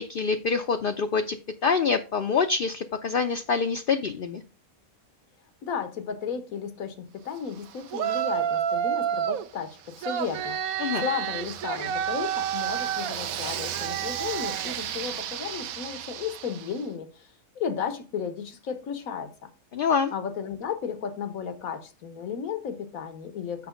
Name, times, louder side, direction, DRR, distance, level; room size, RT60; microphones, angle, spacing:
voice 1, 0.0-1.4 1.6-4.4 10.8-11.1 19.7-20.1, left 5 dB, 55° left, 0.7 m, -25 dB
voice 2, 5.6-19.3 20.1-23.7, left 7 dB, 80° left, 1.6 m, -34 dB
Yell, 7.9-9.5 10.0-16.7, right 9 dB, 85° right, 1.1 m, -30 dB
6.9 x 5.6 x 5.1 m
omnidirectional pair, 1.5 m